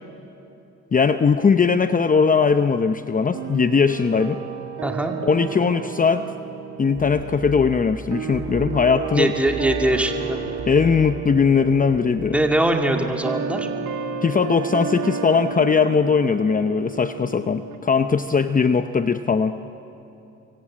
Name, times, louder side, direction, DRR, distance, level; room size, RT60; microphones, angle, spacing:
voice 1, 0.9-4.4 5.2-6.3 6.8-9.3 10.7-12.4 14.2-19.6, left 5 dB, 25° left, 10 dB, 0.7 m, -19 dB
sound 1, 3.3-17.8, right 6 dB, 85° right, 1.9 m, -33 dB
voice 2, 4.8-5.1 9.2-10.4 12.3-13.7, right 1 dB, 5° right, 2 dB, 2.4 m, -21 dB
sound 2, 6.9-12.0, right 2 dB, 45° right, 4.7 m, -36 dB
26.0 x 23.5 x 8.6 m, 2.9 s
cardioid pair, 90°, 30 cm